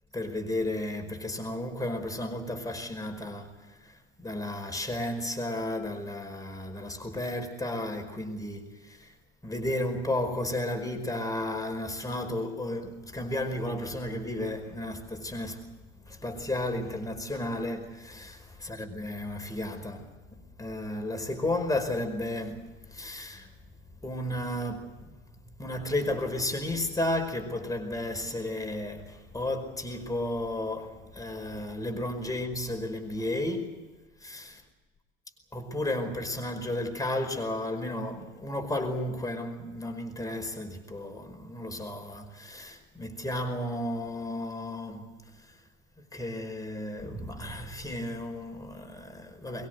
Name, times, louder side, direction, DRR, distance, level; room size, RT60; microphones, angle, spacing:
voice 1, 0.1-3.6 3.8-9.1 9.4-15.7 16.0-20.1 20.6-23.5 24.0-25.1 25.6-33.9 34.2-34.4 35.5-45.1 46.1-49.7, left 1 dB, 10° left, 5.0 m, -33 dB
23.5 x 22.0 x 8.1 m
figure-of-eight pair, 80°, 41 cm